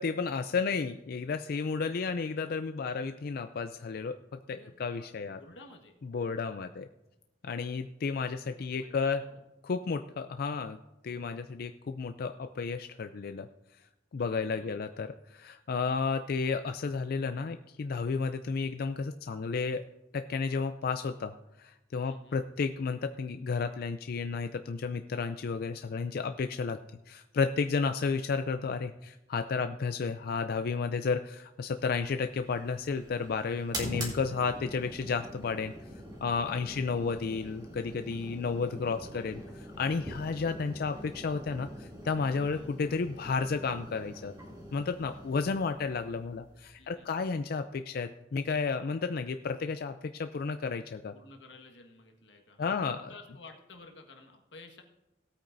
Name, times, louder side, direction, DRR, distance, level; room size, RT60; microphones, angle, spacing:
voice 1, 0.0-5.4 6.0-6.9 7.4-9.2 9.6-10.8 11.0-13.5 14.1-19.8 20.1-26.8 27.1-35.7 36.2-44.3 44.7-51.1 52.6-53.1, left 5 dB, 55° left, 9 dB, 0.4 m, -32 dB
voice 2, 4.5-5.9 8.7-9.4 14.4-14.7 22.0-22.4 36.4-37.0 42.5-42.7 45.1-45.2 45.6-46.0 46.8-47.4 51.1-54.8, left 3 dB, 90° left, 4 dB, 1.5 m, -54 dB
sound 1, 31.9-47.2, equal, 20° right, 2.2 m, -45 dB
18.0 x 8.6 x 2.6 m, 0.98 s
head